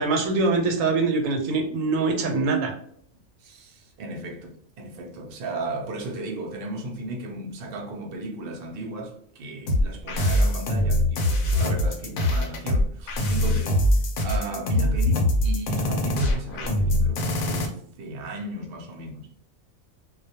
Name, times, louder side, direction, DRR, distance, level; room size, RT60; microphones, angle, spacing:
voice 1, 0.0-2.7, right 3 dB, 80° right, 1.0 m, -23 dB
voice 2, 3.4-13.8 14.2-19.4, right 2 dB, 60° right, 0.6 m, -35 dB
sound 1, 9.7-17.7, left 1 dB, 80° left, 1.0 m, -23 dB
2.3 x 2.1 x 2.7 m
omnidirectional pair, 1.4 m